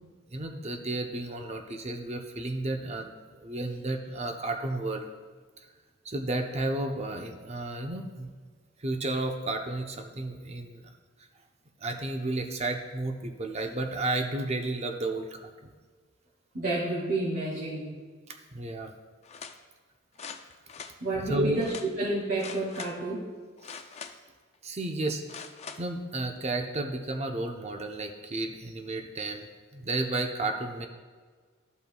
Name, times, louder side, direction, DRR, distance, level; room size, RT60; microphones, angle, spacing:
voice 1, 0.3-5.1 6.0-8.3 8.8-10.8 11.8-15.7 18.5-18.9 21.3-21.6 23.6-23.8 24.6-25.4 25.8-30.9, right 2 dB, 30° right, 4 dB, 0.6 m, -32 dB
voice 2, 16.5-17.9 21.0-23.3, right 2 dB, 55° right, -10 dB, 2.1 m, -30 dB
sound 1, 19.2-19.6 20.1-20.9 21.6-21.9 22.4-22.9 23.6-24.3 25.3-25.8 26.4-26.5, left 6 dB, 30° left, 0.4 m, -43 dB
13.5 x 5.5 x 2.3 m, 1.5 s
head